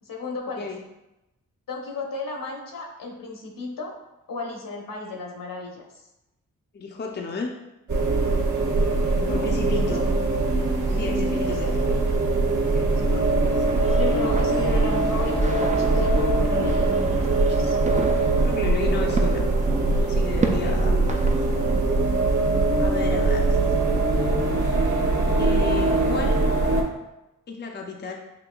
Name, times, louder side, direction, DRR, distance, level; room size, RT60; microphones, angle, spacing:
voice 1, 0.0-0.7 1.7-3.9 4.3-5.9 9.1-10.0 10.9-11.7 13.0-13.3 13.9-17.8 20.6-20.8 23.5-23.6 23.8-24.1 24.5-24.7, left 3 dB, 70° left, 1 dB, 1.0 m, -35 dB
voice 2, 6.7-7.5 9.3-10.0 10.9-11.9 12.7-13.6 18.4-19.5 20.0-21.6 22.8-23.5 25.4-26.4 27.5-28.2, left 4 dB, 30° left, 1 dB, 0.5 m, -33 dB
sound 1, 7.9-26.8, right 2 dB, 60° right, 1.2 m, -22 dB
sound 2, 13.6-21.9, right 3 dB, 20° right, 0.4 m, -33 dB
6.0 x 2.8 x 2.3 m, 0.94 s
cardioid pair, 55°, 34 cm